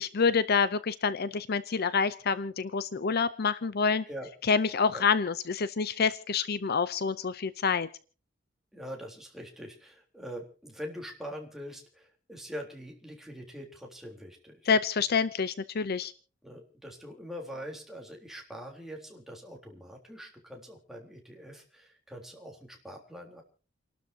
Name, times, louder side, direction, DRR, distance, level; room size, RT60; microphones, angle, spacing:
voice 1, 0.0-4.0 4.4-7.9 14.7-16.1, left 5 dB, 55° left, 15 dB, 0.6 m, -27 dB
voice 2, 8.7-14.7 16.4-23.4, equal, ahead, 0 dB, 3.6 m, -43 dB
29.5 x 12.5 x 2.8 m, 0.38 s
head